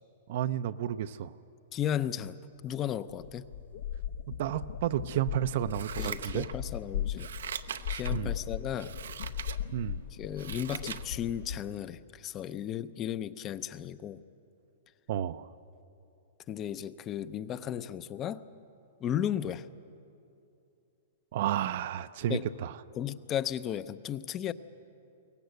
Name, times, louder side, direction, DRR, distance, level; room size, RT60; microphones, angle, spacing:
voice 1, 0.3-1.3 4.4-6.5 8.1-8.4 9.7-10.0 15.1-15.5 21.3-22.7, right 11 dB, 50° right, 12 dB, 0.5 m, -31 dB
voice 2, 1.7-2.4 2.6-3.4 6.0-7.3 7.9-8.9 10.2-14.2 16.5-18.5 19.0-19.7 22.3-22.5 23.0-24.5, left 10 dB, 20° left, 15 dB, 0.5 m, -34 dB
sound 1, 2.7-2.8 3.1-11.6, left 9 dB, 80° left, 1.0 m, -38 dB
Scissors, 5.7-6.8 7.1-8.2 8.8-9.6 10.0-11.1 11.5-11.6, right 8 dB, 90° right, 0.8 m, -41 dB
22.5 x 18.5 x 8.0 m, 2.7 s
hypercardioid pair, 160°, 0 cm